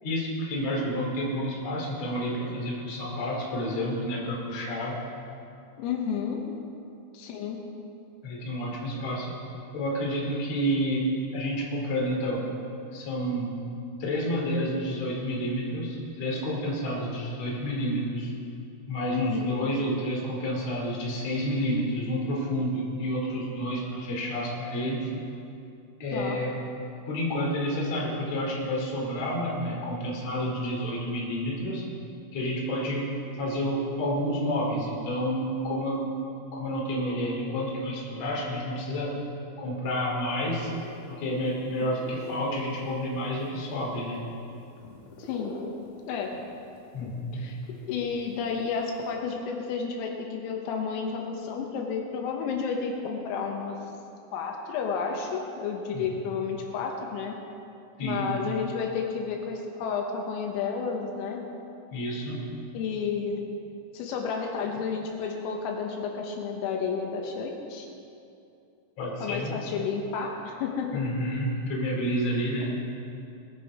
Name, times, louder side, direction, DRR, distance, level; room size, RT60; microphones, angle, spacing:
voice 1, 0.0-5.0 8.2-9.4 9.7-11.0 11.3-12.4 12.9-13.5 14.0-18.3 18.9-25.1 26.0-26.6 27.0-31.8 32.3-33.1 33.4-36.0 36.5-39.1 39.6-40.7 41.1-44.2 46.9-47.4 55.9-56.0 58.0-58.3 61.9-62.4 69.0-69.6 70.9-72.7, equal, 40° left, -3 dB, 3.1 m, -29 dB
voice 2, 5.8-6.4 7.1-7.6 19.1-19.6 26.1-26.4 45.2-45.5 46.1-46.3 47.0-47.6 47.9-53.8 54.3-57.4 58.0-61.4 62.7-63.4 63.9-67.9 69.2-71.0, left 5 dB, 85° left, 1 dB, 3.8 m, -31 dB
sound 1, 40.4-49.1, left 1 dB, 65° left, 1.7 m, -47 dB
20.5 x 8.6 x 4.9 m, 2.6 s
omnidirectional pair, 5.9 m